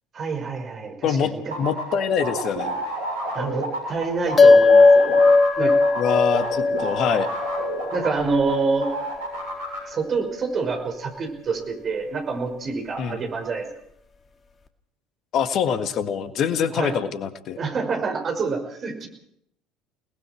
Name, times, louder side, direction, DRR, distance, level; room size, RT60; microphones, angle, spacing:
voice 1, 0.1-1.5 3.3-5.2 5.6-5.8 7.9-8.9 9.9-13.7 16.7-17.0 17.6-19.1, right 4 dB, 35° right, 4 dB, 5.5 m, -27 dB
voice 2, 1.0-2.8 6.0-7.3 13.0-13.2 15.3-17.6, left 7 dB, 50° left, 10 dB, 1.7 m, -24 dB
sound 1, 1.5-8.6 8.8-9.8, right 1 dB, 80° right, 7.6 m, -30 dB
sound 2, 4.4-9.1, left 3 dB, 30° left, 2.0 m, -18 dB
29.0 x 19.5 x 4.5 m, 0.70 s
figure-of-eight pair, 65°, 0 cm